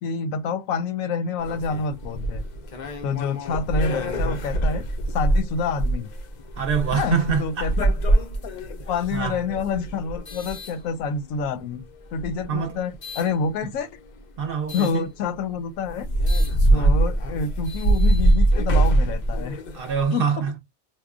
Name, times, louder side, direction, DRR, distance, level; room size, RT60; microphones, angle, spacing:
voice 1, 0.0-2.4 3.0-4.8 5.1-6.1 6.9-7.9 8.7-11.8 12.1-13.9 14.7-16.1 16.6-19.6 20.1-20.3, left 5 dB, 90° left, 1.0 m, -27 dB
sound 1, 1.4-11.4 12.1-13.3 14.7-15.0 15.5-15.6 15.9-20.0, right 1 dB, 65° left, 0.4 m, -24 dB
voice 2, 6.6-7.7 9.1-9.4 12.5-12.8 13.6-13.7 14.4-15.1 16.7-17.0 19.7-20.6, right 6 dB, 60° right, 0.6 m, -26 dB
4.6 x 2.1 x 2.4 m
omnidirectional pair, 1.4 m